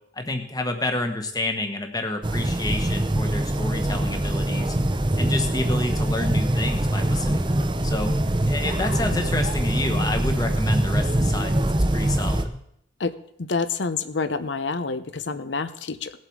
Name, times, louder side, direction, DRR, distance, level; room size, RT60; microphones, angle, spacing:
voice 1, 0.1-4.7 5.2-8.1 8.5-12.6, left 2 dB, 20° left, 5 dB, 1.3 m, -29 dB
sound 1, 2.2-12.4, right 1 dB, 25° right, 0.7 m, -23 dB
voice 2, 13.4-16.1, left 4 dB, 60° left, 12 dB, 0.8 m, -27 dB
18.5 x 7.6 x 4.7 m, 0.74 s
head